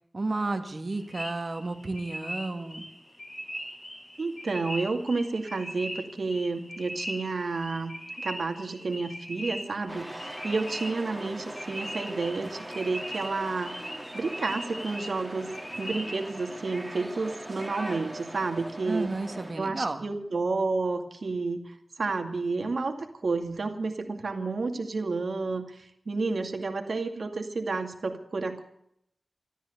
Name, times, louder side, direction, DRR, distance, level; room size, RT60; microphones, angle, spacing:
voice 1, 0.1-2.9 18.9-20.0, right 2 dB, 55° right, 6 dB, 2.3 m, -32 dB
sound 1, 0.9-16.5, equal, 40° left, 7.8 m, -40 dB
voice 2, 4.2-13.8 14.1-15.5 15.7-19.1 19.6-28.6, right 3 dB, 75° right, 6 dB, 2.2 m, -31 dB
sound 2, 9.9-19.5, right 1 dB, 10° right, 3.3 m, -41 dB
14.0 x 12.5 x 8.1 m, 0.74 s
wide cardioid pair, 60°, 0 cm